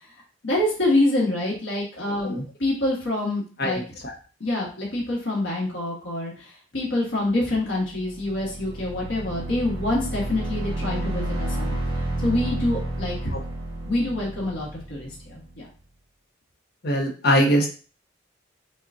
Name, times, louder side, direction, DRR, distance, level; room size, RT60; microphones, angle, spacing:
voice 1, 0.4-3.8 4.4-11.8 12.2-13.3 13.9-15.7, left 1 dB, 75° left, -4 dB, 1.5 m, -26 dB
voice 2, 3.6-4.1 13.3-13.4 16.8-17.7, equal, 55° left, 2 dB, 1.0 m, -22 dB
sound 1, 7.8-15.5, right 1 dB, 25° right, 1.1 m, -31 dB
5.5 x 2.4 x 2.6 m, 0.37 s
head